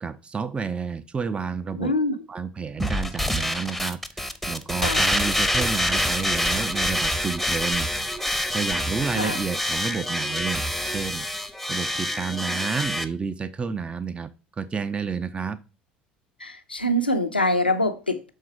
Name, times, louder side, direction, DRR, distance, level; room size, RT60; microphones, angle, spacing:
voice 1, 0.0-1.9 2.3-7.9 8.5-11.3 11.7-14.3 14.6-15.6, right 5 dB, 20° right, 0.6 m, -30 dB
voice 2, 1.8-2.2 4.8-5.1 9.2-9.4 16.4-18.3, left 1 dB, 90° left, 0.7 m, -24 dB
sound 1, 2.8-13.0, left 1 dB, ahead, 0.8 m, -26 dB
6.6 x 3.8 x 5.8 m
figure-of-eight pair, 65°, 5 cm